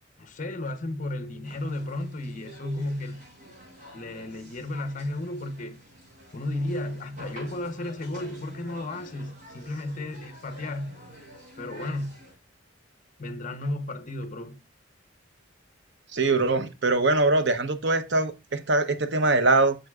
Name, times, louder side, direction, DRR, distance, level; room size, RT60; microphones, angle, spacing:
voice 1, 0.2-3.2 3.9-5.8 6.3-11.0 11.6-12.2 13.2-14.6, left 1 dB, 40° left, 0.7 m, -33 dB
sound 1, 1.4-12.3, right 1 dB, 40° right, 4.6 m, -48 dB
voice 2, 16.1-19.8, right 2 dB, 60° right, 0.7 m, -22 dB
7.8 x 6.4 x 2.3 m
head